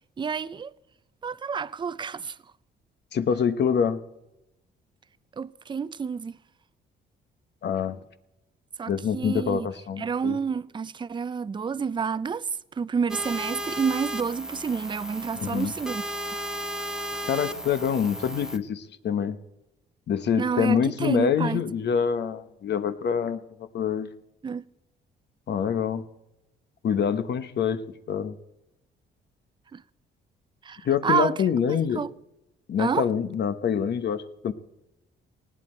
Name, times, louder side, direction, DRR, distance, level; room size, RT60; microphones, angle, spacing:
voice 1, 0.2-0.7 1.2-2.3 5.4-6.4 8.8-9.7 10.0-12.4 12.8-16.0 20.4-21.6 24.4-24.6 29.7-29.8 30.6-31.4 31.7-32.1 32.8-33.1, right 6 dB, 25° right, 0.5 m, -29 dB
voice 2, 3.1-4.0 7.6-8.0 8.9-10.4 15.3-15.7 17.3-19.4 20.1-23.4 23.7-24.1 25.5-26.1 26.8-28.4 30.8-32.0 32.7-34.5, left 7 dB, 60° left, 1.0 m, -26 dB
sound 1, 13.1-18.6, right 1 dB, 5° right, 1.0 m, -34 dB
19.0 x 16.5 x 4.4 m
cardioid pair, 90°, 20 cm